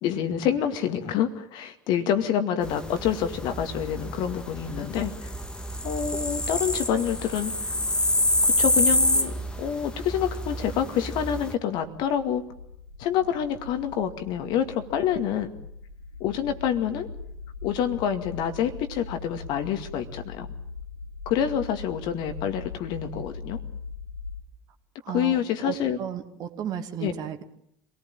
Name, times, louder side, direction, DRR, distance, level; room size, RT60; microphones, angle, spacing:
voice 1, 0.0-5.3 5.8-7.7 8.4-12.4 13.0-15.5 16.2-17.1 17.6-20.5 21.3-23.6 25.1-26.0 27.0-27.1, left 9 dB, 55° left, 8 dB, 2.3 m, -27 dB
sound 1, 2.6-11.5, left 1 dB, 10° left, 2.1 m, -27 dB
sound 2, 11.5-24.4, left 4 dB, 85° left, 1.5 m, -41 dB
voice 2, 25.0-27.4, right 9 dB, 45° right, 7 dB, 2.5 m, -34 dB
27.0 x 18.5 x 9.2 m, 0.74 s
figure-of-eight pair, 65°, 9 cm